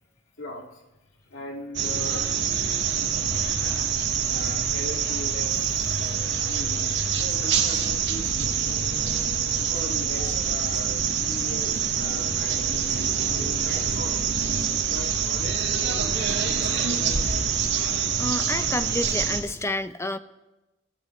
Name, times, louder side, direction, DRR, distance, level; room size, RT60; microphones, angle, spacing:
voice 1, 0.4-0.8 1.2-2.3 3.4-3.5 4.2-5.6 6.4-6.9 7.4-8.8 9.5-14.3 14.8-17.1, left 1 dB, 85° left, 0 dB, 2.3 m, -39 dB
sound 1, 1.7-19.4, right 7 dB, 65° right, 1.9 m, -25 dB
sound 2, 5.9-17.4, left 1 dB, 55° left, 1.5 m, -45 dB
voice 2, 18.2-20.2, left 1 dB, 15° left, 11 dB, 0.6 m, -29 dB
30.0 x 14.0 x 3.2 m, 1.0 s
head